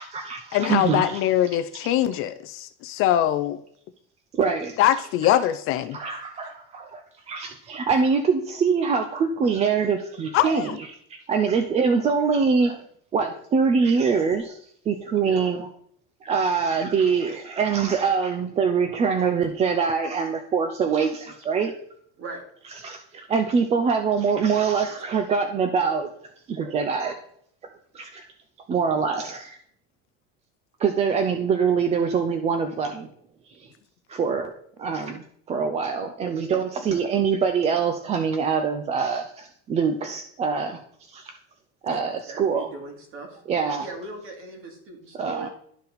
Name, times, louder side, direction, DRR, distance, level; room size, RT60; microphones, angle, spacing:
voice 1, 0.0-1.2 4.3-4.8 5.9-12.8 13.1-14.6 14.9-15.7 16.2-21.7 22.8-26.1 26.5-27.2 27.6-28.2 28.7-29.6 30.8-33.1 33.5-33.7 34.1-34.5 34.8-40.8 41.1-41.3 41.8-42.7 43.5-43.8 45.1-45.5, right 5 dB, 20° right, 6 dB, 0.4 m, -24 dB
voice 2, 0.5-3.6 4.8-6.0 10.3-10.8, left 12 dB, 45° left, 10 dB, 0.4 m, -22 dB
voice 3, 6.0-6.5 15.2-15.4 22.2-22.4 42.3-45.5, right 2 dB, 45° right, 2 dB, 2.1 m, -40 dB
11.5 x 4.1 x 4.1 m, 0.65 s
cardioid pair, 165°, 31 cm